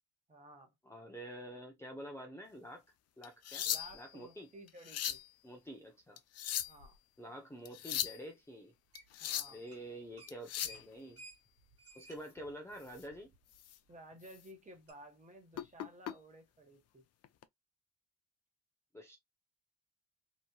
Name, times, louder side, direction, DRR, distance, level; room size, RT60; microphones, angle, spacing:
voice 1, 0.3-0.7 3.6-5.2 6.6-7.0 9.2-9.6 13.9-17.0, right 1 dB, 25° right, 1.3 m, -55 dB
voice 2, 0.8-2.8 3.2-3.7 3.9-4.5 5.4-6.2 7.2-8.7 9.5-11.2 11.9-13.3 18.9-19.2, equal, 10° left, 0.6 m, -48 dB
sound 1, 3.2-4.1 4.7-5.3 6.2-6.9 7.7-8.2 8.9-9.6 10.3-10.8 12.9-13.0 13.6-13.8 14.2-14.4 15.5-16.1 17.2-17.4, left 11 dB, 55° left, 0.5 m, -38 dB
sound 2, 8.9-9.3 9.6-9.9 10.2-13.6 13.9-14.0 14.9-15.0, right 2 dB, 50° right, 1.7 m, -57 dB
3.0 x 2.6 x 2.2 m
cardioid pair, 90°, 30 cm